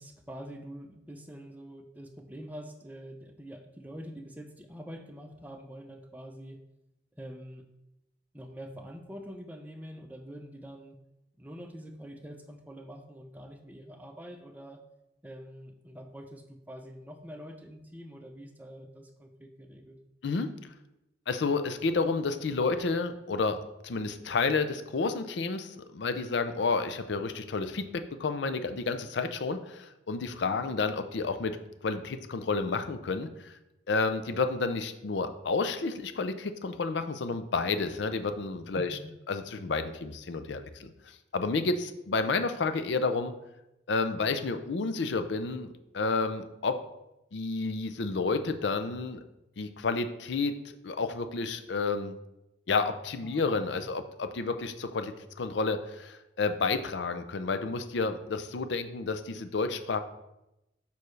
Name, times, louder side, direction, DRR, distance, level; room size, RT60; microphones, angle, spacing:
voice 1, 0.0-6.6 7.2-7.6 8.3-11.0 11.4-14.8 15.2-20.0 38.8-39.1 53.2-53.5 53.8-53.9, equal, 10° right, 4 dB, 0.5 m, -45 dB
voice 2, 21.3-23.6 23.8-31.5 31.8-33.5 33.9-39.0 39.3-43.3 43.9-46.8 47.3-49.2 49.6-52.2 52.7-60.0, left 4 dB, 70° left, 10 dB, 0.5 m, -30 dB
6.6 x 5.3 x 3.2 m, 0.91 s
head